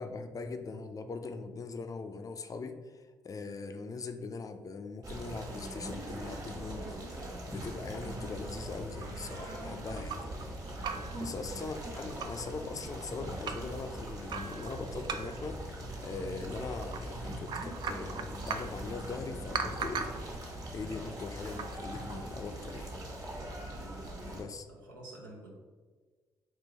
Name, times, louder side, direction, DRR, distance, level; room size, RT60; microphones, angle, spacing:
voice 1, 0.0-6.9 7.5-10.2 11.2-20.1 20.7-23.0 24.3-24.7, left 4 dB, 35° left, 7 dB, 0.4 m, -41 dB
sound 1, 5.0-24.4, right 1 dB, 35° right, 1.2 m, -41 dB
sound 2, 9.0-10.4 10.7-11.3 11.6-11.7 12.0-12.5 13.0-13.7 14.3-15.5 16.5-17.0 17.3-18.8 19.5-20.3 21.4-21.8, right 6 dB, 50° right, 0.4 m, -39 dB
voice 2, 10.8-11.2 23.7-24.1 24.7-25.5, right 2 dB, 85° right, -1 dB, 0.6 m, -50 dB
3.7 x 2.6 x 4.0 m, 1.4 s
hypercardioid pair, 45°, 10 cm